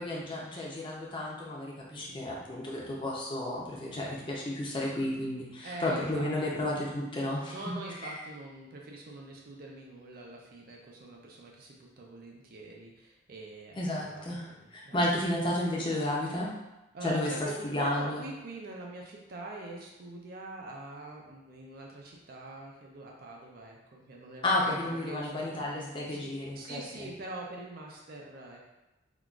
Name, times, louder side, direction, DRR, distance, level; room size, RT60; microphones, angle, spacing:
voice 1, 0.0-7.5 8.0-8.1 13.8-16.5 17.0-18.2 24.4-27.1, left 1 dB, 25° left, -3 dB, 0.5 m, -32 dB
voice 2, 1.9-2.2 3.8-4.1 5.6-6.6 7.5-15.0 16.9-25.7 26.1-28.6, right 2 dB, 45° right, -1 dB, 0.4 m, -44 dB
3.7 x 2.3 x 2.3 m, 0.99 s
head